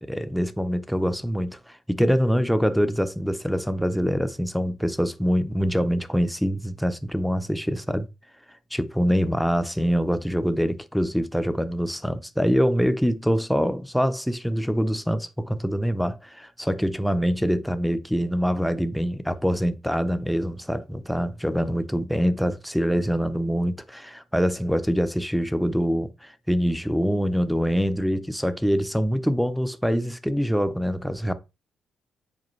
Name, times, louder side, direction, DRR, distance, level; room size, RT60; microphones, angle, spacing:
voice 1, 0.0-8.1 8.7-31.3, equal, ahead, 0.4 m, -24 dB
7.4 x 4.8 x 3.1 m
wide cardioid pair, 175°, 0 cm